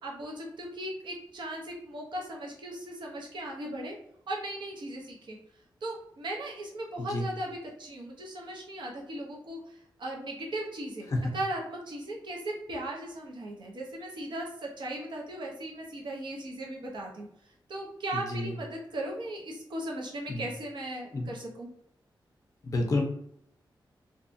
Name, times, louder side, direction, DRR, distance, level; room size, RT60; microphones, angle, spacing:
voice 1, 0.0-4.0 4.3-5.4 5.8-17.3 17.7-21.7, right 1 dB, 70° right, -2 dB, 0.7 m, -37 dB
voice 2, 18.1-18.5 20.3-20.5 21.1-21.3 22.6-23.0, left 2 dB, 40° left, 2 dB, 0.5 m, -30 dB
2.7 x 2.3 x 2.5 m, 0.72 s
wide cardioid pair, 100°, 8 cm